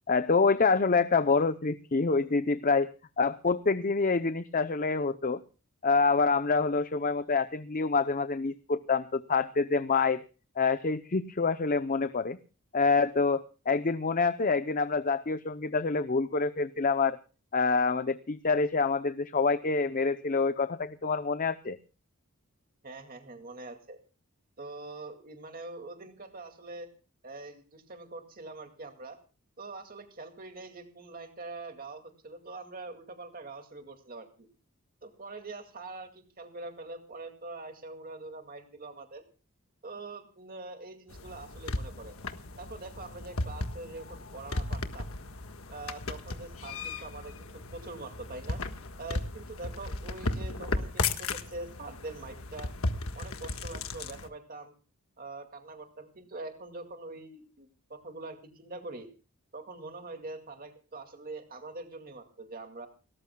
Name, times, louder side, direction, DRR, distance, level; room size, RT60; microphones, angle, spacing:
voice 1, 0.1-2.9 3.2-5.4 5.8-10.2 10.6-12.4 12.7-17.2 17.5-21.8, left 4 dB, 40° left, 11 dB, 0.6 m, -26 dB
voice 2, 22.8-24.0 24.6-26.9 27.2-29.2 29.6-34.5 35.0-39.2 39.8-42.1 42.6-45.1 45.7-48.6 49.0-52.7 53.1-54.7 55.2-59.1 59.5-62.9, right 2 dB, 40° right, 5 dB, 2.2 m, -44 dB
sound 1, 41.1-54.3, left 2 dB, 65° left, 1.5 m, -36 dB
30.0 x 14.0 x 2.3 m, 0.35 s
head